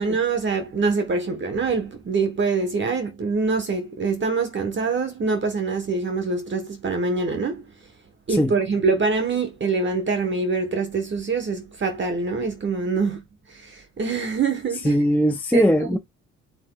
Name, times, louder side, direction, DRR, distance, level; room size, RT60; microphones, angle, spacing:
voice 1, 0.0-7.6 8.3-15.0 15.5-16.0, right 4 dB, 40° right, 1.1 m, -25 dB
voice 2, 14.8-16.0, left 1 dB, 5° left, 0.4 m, -20 dB
7.4 x 2.7 x 2.2 m
cardioid pair, 90°, 30 cm